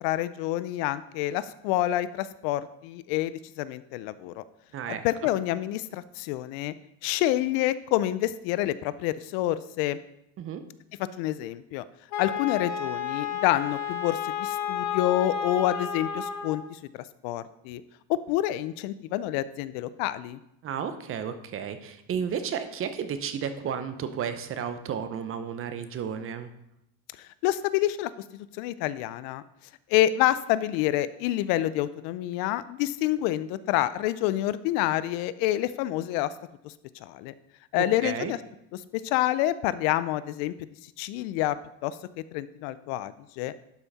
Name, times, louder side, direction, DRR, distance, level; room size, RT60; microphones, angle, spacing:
voice 1, 0.0-4.4 4.9-6.7 7.0-10.0 11.2-11.8 12.2-17.8 18.1-20.4 27.2-29.4 29.9-36.3 36.6-36.7 37.0-37.3 37.7-38.4 38.9-40.5 41.0-41.6 41.8-42.0 42.3-43.5, left 14 dB, 65° left, 16 dB, 0.6 m, -28 dB
voice 2, 4.7-5.0 10.4-10.6 20.6-26.5 38.0-38.3, right 7 dB, 35° right, 10 dB, 0.8 m, -32 dB
Wind instrument woodwind instrument, 12.1-16.7, left 8 dB, 45° left, 1.5 m, -31 dB
11.5 x 5.6 x 4.1 m, 0.80 s
supercardioid pair, 130°, 39 cm